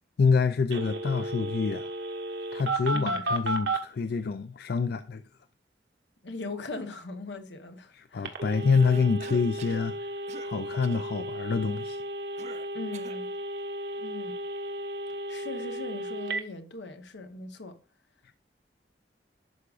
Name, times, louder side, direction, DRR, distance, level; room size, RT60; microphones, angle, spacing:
voice 1, 0.2-1.9 2.5-5.2 7.9-10.1 10.4-12.0 18.2-18.3, left 5 dB, 60° left, 0.4 m, -27 dB
Telephone, 0.7-3.8 8.2-16.4, right 1 dB, 85° right, 1.3 m, -34 dB
voice 2, 6.2-8.3 12.7-13.3 14.0-14.3 15.3-17.8, left 3 dB, 80° left, 1.1 m, -39 dB
Cough, 8.7-9.9 10.3-10.5 10.8-11.1 12.4-13.2, right 4 dB, 40° right, 0.5 m, -46 dB
11.5 x 4.8 x 2.4 m
head